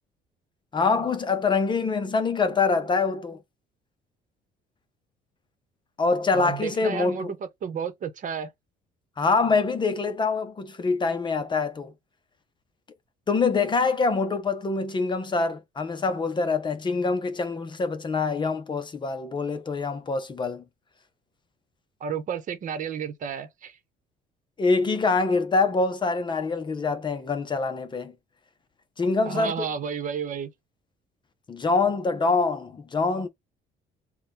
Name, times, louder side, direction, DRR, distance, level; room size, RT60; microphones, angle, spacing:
voice 1, 0.7-3.4 6.0-7.3 9.2-11.9 13.3-20.6 24.6-28.1 29.0-29.5 31.5-33.3, left 4 dB, 25° left, 0.7 m, -25 dB
voice 2, 6.3-8.5 22.0-23.8 29.3-30.5, right 7 dB, 50° right, 1.0 m, -32 dB
4.2 x 2.3 x 3.6 m
cardioid pair, 110°, 17 cm